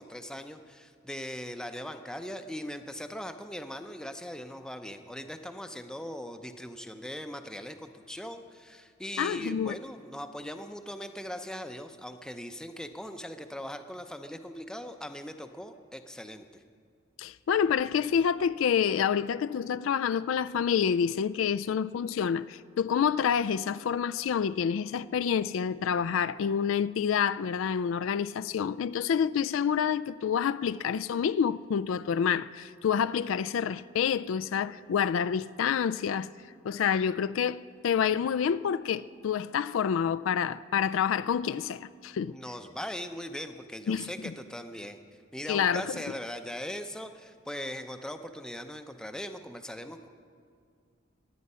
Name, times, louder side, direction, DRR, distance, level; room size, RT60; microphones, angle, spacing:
voice 1, 0.0-16.5 42.3-45.0 45.3-50.1, equal, 5° left, 0.6 m, -40 dB
voice 2, 9.2-9.7 17.2-36.3 36.6-42.4 43.9-44.3 45.5-46.0, left 7 dB, 70° left, 0.3 m, -28 dB
23.5 x 9.5 x 5.5 m
head